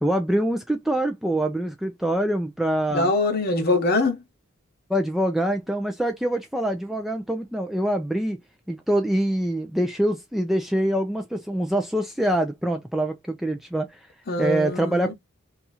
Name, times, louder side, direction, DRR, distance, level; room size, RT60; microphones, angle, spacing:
voice 1, 0.0-3.1 4.9-8.4 8.7-14.0 14.4-15.1, right 1 dB, ahead, 0.3 m, -25 dB
voice 2, 2.9-4.2 14.3-15.1, left 2 dB, 45° left, 0.9 m, -23 dB
2.8 x 2.4 x 4.1 m
head